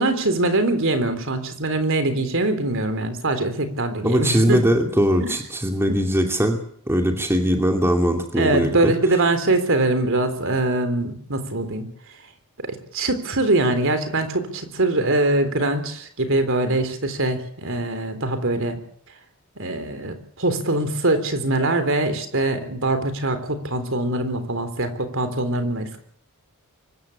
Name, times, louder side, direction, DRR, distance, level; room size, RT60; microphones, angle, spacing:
voice 1, 0.0-4.6 5.2-5.3 5.9-6.0 8.3-11.9 12.7-18.8 19.6-26.0, right 2 dB, 60° right, 9 dB, 3.6 m, -23 dB
voice 2, 4.0-6.6 6.9-8.9, equal, 10° right, 3 dB, 2.6 m, -20 dB
24.0 x 13.5 x 8.7 m, 0.62 s
head